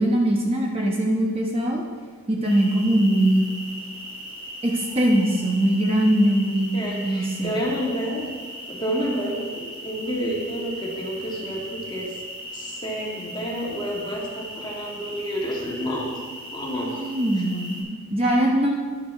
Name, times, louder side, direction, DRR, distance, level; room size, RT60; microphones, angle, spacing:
voice 1, 0.0-1.8 2.3-3.4 4.6-7.5 16.9-18.7, right 1 dB, 25° right, -1 dB, 1.0 m, -21 dB
sound 1, 2.4-17.8, equal, 75° right, 3.4 m, -38 dB
voice 2, 6.7-8.3 8.7-12.1 12.5-16.2 16.5-17.1, equal, 20° left, -3 dB, 1.8 m, -29 dB
10.5 x 10.0 x 3.5 m, 1.6 s
head